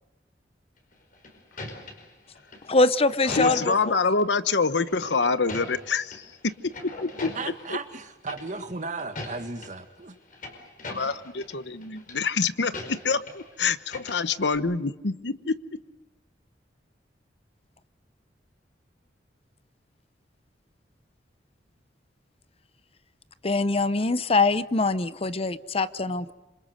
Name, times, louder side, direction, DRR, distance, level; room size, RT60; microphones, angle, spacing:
sound 1, 0.9-4.0 4.9-6.2 6.5-7.7 8.3-8.7 9.0-9.7 10.1-11.5 11.8-12.1 12.7-13.5 13.8-14.6, left 2 dB, 50° left, 5.1 m, -40 dB
voice 1, 2.7-3.9 23.4-26.3, left 3 dB, 35° left, 15 dB, 0.8 m, -23 dB
voice 2, 3.3-6.5 6.8-7.3 7.7-7.8 10.9-15.8, left 4 dB, 75° left, 14 dB, 1.0 m, -26 dB
voice 3, 7.4-10.2, right 3 dB, 45° right, 8 dB, 1.9 m, -35 dB
27.0 x 26.5 x 6.6 m, 1.0 s
head